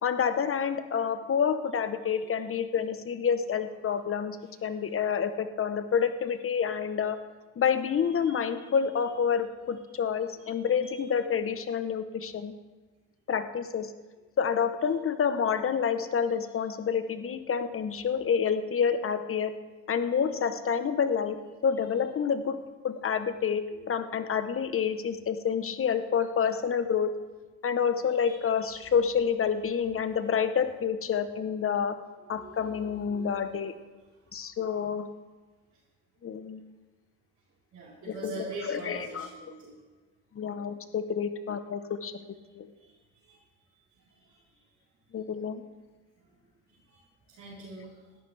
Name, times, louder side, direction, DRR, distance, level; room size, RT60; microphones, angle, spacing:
voice 1, 0.0-7.2 7.6-12.5 13.3-13.9 14.4-19.5 19.9-21.4 21.6-22.6 22.8-27.1 27.6-32.0 32.3-33.7 34.3-35.1 36.2-36.6 38.1-39.3 40.4-42.2 42.6-42.7 45.1-45.6, left 7 dB, 45° left, 10 dB, 1.0 m, -28 dB
voice 2, 8.2-8.6 10.4-10.9 20.1-20.2 28.2-28.4 32.3-33.4 37.7-39.8 42.8-42.9 43.1-43.4 44.3-44.4 46.9-47.0 47.3-48.0, right 2 dB, 65° right, -7 dB, 4.0 m, -44 dB
18.5 x 13.5 x 3.4 m, 1.3 s
cardioid pair, 90°, 30 cm